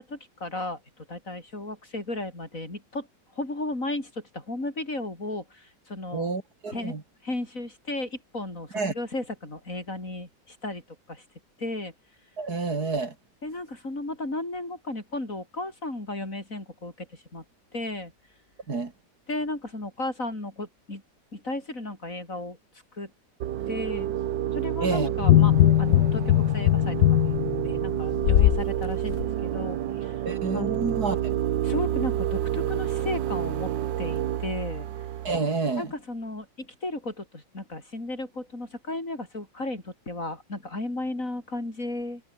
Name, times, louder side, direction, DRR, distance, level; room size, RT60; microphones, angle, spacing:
voice 1, 0.0-3.1 3.4-6.3 6.7-7.0 7.2-10.8 11.1-11.2 11.6-11.9 13.4-17.4 17.7-18.1 19.3-21.0 21.3-22.6 22.9-23.1 23.7-24.1 24.5-27.3 27.6-30.2 30.5-31.0 31.6-33.7 34.0-34.9 35.8-42.2, left 2 dB, 45° left, 6.5 m, -34 dB
voice 2, 6.1-7.0 8.7-8.9 12.4-13.1 18.7-18.9 24.8-25.1 30.2-31.3 35.2-35.9, right 4 dB, 60° right, 3.4 m, -29 dB
sound 1, 23.4-35.4, right 11 dB, 85° right, 1.7 m, -29 dB
sound 2, 25.2-28.6 29.1-29.2, left 15 dB, 70° left, 0.9 m, -20 dB
omnidirectional pair, 1.9 m